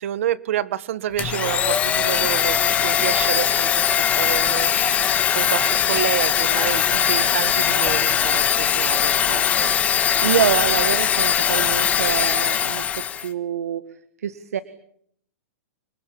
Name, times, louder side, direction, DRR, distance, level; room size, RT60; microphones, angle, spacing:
voice 1, 0.0-9.8, right 12 dB, 60° right, 1.8 m, -29 dB
Domestic sounds home sounds, 1.2-13.3, left 9 dB, 15° left, 1.6 m, -20 dB
voice 2, 10.2-13.8 14.2-14.6, right 8 dB, 90° right, 2.0 m, -25 dB
29.0 x 20.5 x 8.7 m
hypercardioid pair, 160°, 8 cm